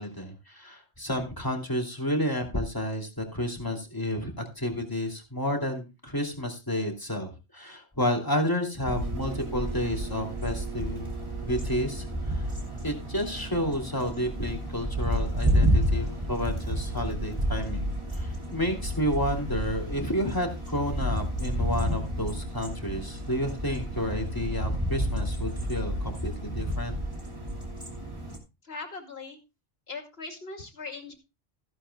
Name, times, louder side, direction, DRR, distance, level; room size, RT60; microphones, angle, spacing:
voice 1, 0.0-11.1 11.4-12.5 12.8-27.0, equal, 20° left, 2 dB, 2.6 m, -31 dB
sound 1, 8.8-28.4, equal, 25° right, 3.0 m, -30 dB
voice 2, 28.6-29.4 29.9-31.1, left 3 dB, 70° left, 4 dB, 2.5 m, -39 dB
15.0 x 11.0 x 2.2 m, 0.27 s
omnidirectional pair, 1.1 m